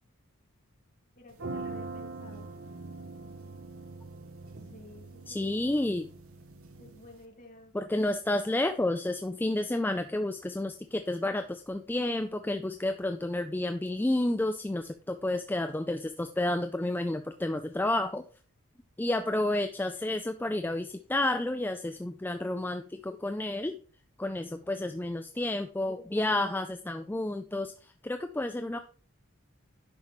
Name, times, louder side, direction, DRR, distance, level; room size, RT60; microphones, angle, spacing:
voice 1, 1.2-2.5 4.7-5.5 6.8-7.7, left 1 dB, 35° left, 1 dB, 2.0 m, -52 dB
sound 1, 1.3-7.2, right 3 dB, 70° right, 1.0 m, -43 dB
voice 2, 5.3-6.1 7.7-18.2 19.0-23.8 24.2-28.8, left 1 dB, 10° left, 7 dB, 0.3 m, -30 dB
9.7 x 5.7 x 3.1 m, 0.40 s
head